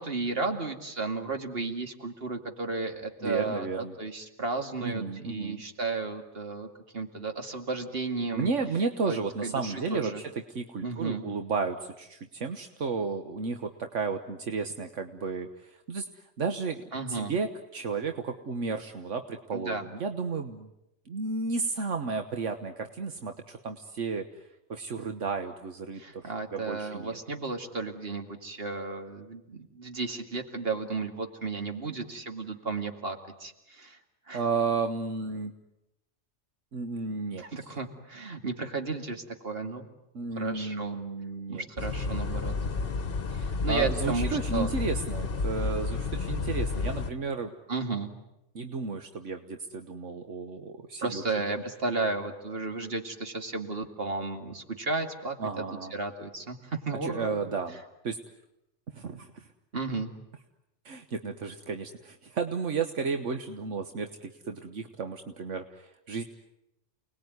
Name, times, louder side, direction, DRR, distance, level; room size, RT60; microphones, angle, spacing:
voice 1, 0.0-6.7 6.9-8.5 9.1-10.2 10.8-11.2 16.9-17.3 19.5-19.9 26.0-34.0 34.3-34.4 37.4-39.9 40.4-41.0 41.5-42.5 43.3-44.7 47.7-48.1 51.0-55.6 55.9-57.5 59.7-60.1, right 3 dB, 50° right, 5 dB, 2.6 m, -33 dB
voice 2, 3.2-3.9 4.8-5.6 8.3-10.3 10.5-16.1 16.4-16.8 17.1-20.7 21.1-24.3 24.7-27.2 34.3-35.5 36.7-37.8 40.1-41.6 43.7-47.5 48.5-51.4 55.4-55.9 57.0-57.8 58.0-58.2 58.9-59.4 60.8-66.2, right 4 dB, 80° right, 7 dB, 1.6 m, -33 dB
sound 1, 41.8-47.1, left 4 dB, 50° left, 1.4 m, -31 dB
29.5 x 20.0 x 9.6 m, 0.89 s
omnidirectional pair, 1.3 m